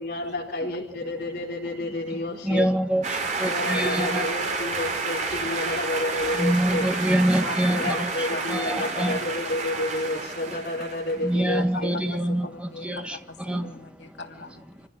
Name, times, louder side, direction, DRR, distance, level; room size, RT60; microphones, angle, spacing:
voice 1, 0.0-2.7 3.4-6.9 7.7-11.9, left 1 dB, 50° left, -6 dB, 4.9 m, -30 dB
voice 2, 2.4-4.3 6.4-8.1 8.5-9.2 11.2-13.2 13.5-13.7, right 1 dB, 5° right, 5 dB, 1.7 m, -25 dB
sound 1, 3.0-11.3, right 3 dB, 40° right, 3.6 m, -30 dB
voice 3, 7.4-7.9 8.3-8.9 11.5-14.6, left 2 dB, 70° left, 3 dB, 2.6 m, -38 dB
27.5 x 17.0 x 6.3 m, 0.77 s
head